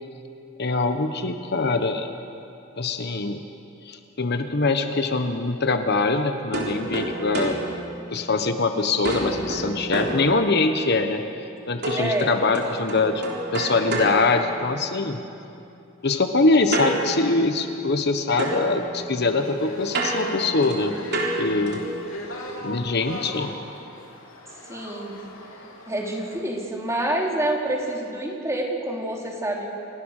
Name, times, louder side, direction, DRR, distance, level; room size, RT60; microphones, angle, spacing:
voice 1, 0.6-2.1 2.8-3.4 3.8-7.6 8.1-11.2 11.7-13.2 13.5-15.2 16.0-20.9 21.4-21.8 22.6-23.5, left 3 dB, 55° left, 7 dB, 1.2 m, -23 dB
sound 1, 6.5-8.6 9.0-10.9 11.8-15.1 16.7-18.1 18.4-22.1, right 2 dB, 55° right, 4.1 m, -30 dB
voice 2, 11.9-12.3 24.6-25.2 25.9-29.7, right 1 dB, 15° right, -1 dB, 3.4 m, -27 dB
sound 2, 19.2-26.4, left 2 dB, 85° left, 3.5 m, -38 dB
28.5 x 19.0 x 6.6 m, 2.7 s
head